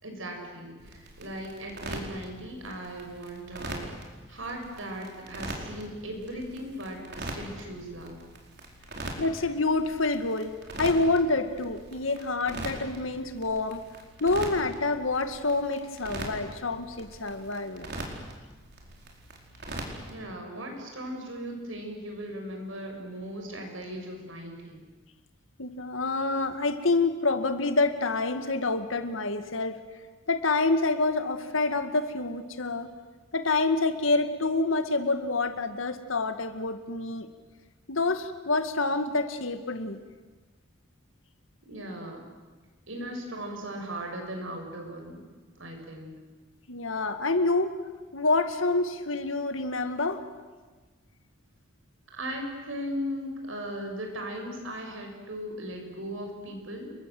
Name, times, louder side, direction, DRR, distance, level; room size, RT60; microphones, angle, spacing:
voice 1, 0.0-3.9 4.3-8.2 20.1-24.8 41.6-42.2 42.9-45.2 45.6-46.1 52.1-56.9, equal, 75° right, 3 dB, 6.8 m, -38 dB
sound 1, 0.8-20.2, right 1 dB, 55° right, 4.7 m, -42 dB
voice 2, 9.2-13.8 14.2-17.9 25.6-29.8 30.3-32.9 33.3-37.3 37.9-40.0 46.7-47.7 48.1-50.2, left 3 dB, 80° left, 9 dB, 2.0 m, -27 dB
29.5 x 22.0 x 7.9 m, 1.3 s
head